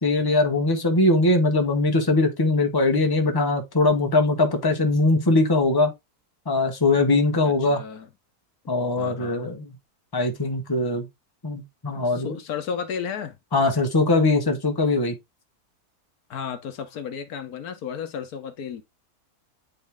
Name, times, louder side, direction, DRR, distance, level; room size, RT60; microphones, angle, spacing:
voice 1, 0.0-5.9 6.5-7.8 8.7-9.8 10.1-11.1 11.4-12.3 13.5-15.2, left 2 dB, 15° left, 1.1 m, -21 dB
voice 2, 7.4-8.1 9.0-9.5 11.9-13.4 16.3-18.8, left 7 dB, 75° left, 1.4 m, -33 dB
9.1 x 3.1 x 3.4 m
omnidirectional pair, 1.6 m